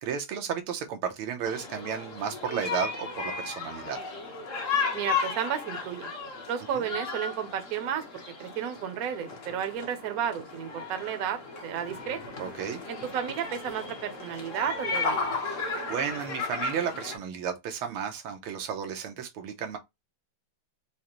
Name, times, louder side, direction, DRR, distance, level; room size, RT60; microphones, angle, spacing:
voice 1, 0.0-4.0 6.7-6.8 12.4-12.8 15.4-19.8, right 7 dB, 90° right, 1.8 m, -33 dB
sound 1, 1.4-17.2, left 4 dB, 50° left, 1.0 m, -34 dB
voice 2, 4.9-6.1 6.5-8.0 8.4-12.2 12.9-15.2, right 9 dB, 55° right, 1.0 m, -32 dB
5.2 x 2.2 x 3.0 m
omnidirectional pair, 2.3 m